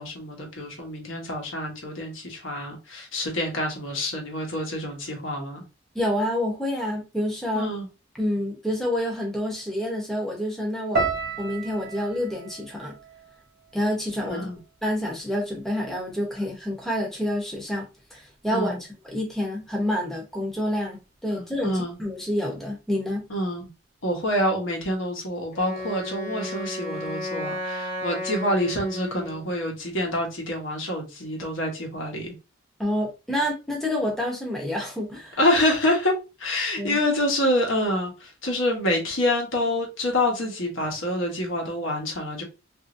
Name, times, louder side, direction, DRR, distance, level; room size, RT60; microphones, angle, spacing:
voice 1, 0.0-5.6 7.5-7.9 14.3-14.6 18.5-18.8 21.4-22.0 23.3-23.7 24.0-32.3 35.4-36.1 36.4-42.4, left 1 dB, 75° left, 1.1 m, -27 dB
voice 2, 5.9-7.7 8.2-11.1 11.4-12.9 13.7-14.5 14.8-17.8 18.1-21.7 22.0-23.2 32.8-35.4 36.8-37.0, left 1 dB, ahead, 0.7 m, -28 dB
sound 1, 11.0-15.2 15.4-16.2 16.8-17.0, right 4 dB, 55° right, 0.6 m, -34 dB
Wind instrument woodwind instrument, 25.5-29.5, left 1 dB, 35° left, 1.1 m, -33 dB
2.9 x 2.6 x 2.5 m
head